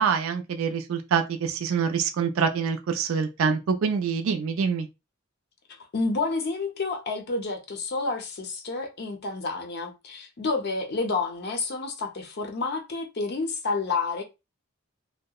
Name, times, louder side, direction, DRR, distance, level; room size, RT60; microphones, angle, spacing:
voice 1, 0.0-4.9, right 6 dB, 75° right, 0.4 m, -25 dB
voice 2, 5.9-14.2, left 3 dB, 50° left, 0.5 m, -29 dB
2.7 x 2.1 x 2.2 m
head